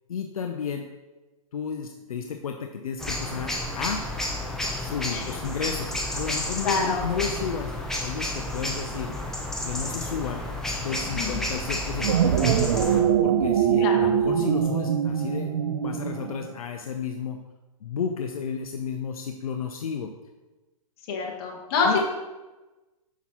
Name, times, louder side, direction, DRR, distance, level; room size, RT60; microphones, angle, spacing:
voice 1, 0.1-0.9 1.5-4.0 4.7-9.4 9.6-10.4 10.8-15.5 15.8-17.4 17.8-20.1 21.8-22.0, left 6 dB, 75° left, 4 dB, 0.6 m, -32 dB
sound 1, 3.0-13.0, left 1 dB, ahead, 0.5 m, -31 dB
voice 2, 6.6-7.0 11.2-11.5 13.8-14.1 21.1-22.0, left 4 dB, 40° left, -1 dB, 1.4 m, -27 dB
sound 2, 11.9-16.5, right 9 dB, 60° right, 0.5 m, -23 dB
6.0 x 5.8 x 2.9 m, 1.1 s
hypercardioid pair, 135°, 19 cm